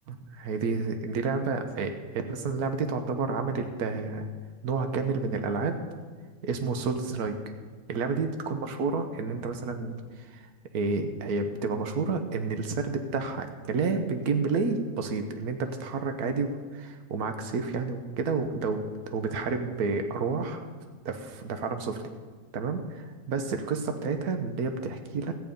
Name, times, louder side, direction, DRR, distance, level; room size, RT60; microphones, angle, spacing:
voice 1, 0.1-4.3 4.6-5.8 6.4-7.4 7.9-20.6 21.0-22.0 22.5-25.3, right 4 dB, 85° right, 7 dB, 1.4 m, -30 dB
13.5 x 9.4 x 5.2 m, 1.5 s
omnidirectional pair, 1.6 m